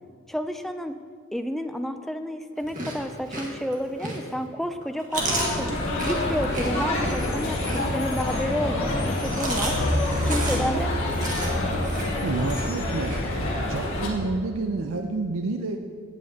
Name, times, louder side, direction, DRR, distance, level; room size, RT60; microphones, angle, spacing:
voice 1, 0.3-1.0 1.3-5.7 6.0-9.8 10.2-10.9, equal, ahead, 8 dB, 0.4 m, -30 dB
Chewing mastication, 2.6-4.4 4.8-8.3 9.0-13.2, right 2 dB, 40° right, 1.7 m, -33 dB
sound 1, 5.1-14.1, left 1 dB, 65° left, 1.9 m, -26 dB
voice 2, 10.1-13.2 13.7-15.8, right 3 dB, 90° right, 4 dB, 0.5 m, -31 dB
16.0 x 8.4 x 2.9 m, 2.2 s
head